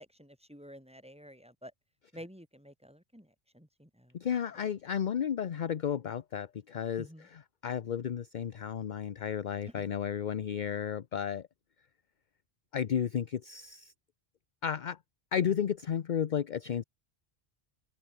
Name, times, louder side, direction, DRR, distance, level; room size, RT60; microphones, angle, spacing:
voice 1, 0.0-1.7 2.1-4.2 7.0-7.3 9.7-9.9, equal, 5° right, 4.7 m, -51 dB
voice 2, 4.1-11.5 12.7-13.9 14.6-15.0 15.3-16.8, left 8 dB, 50° left, 0.8 m, -33 dB
omnidirectional pair, 1.1 m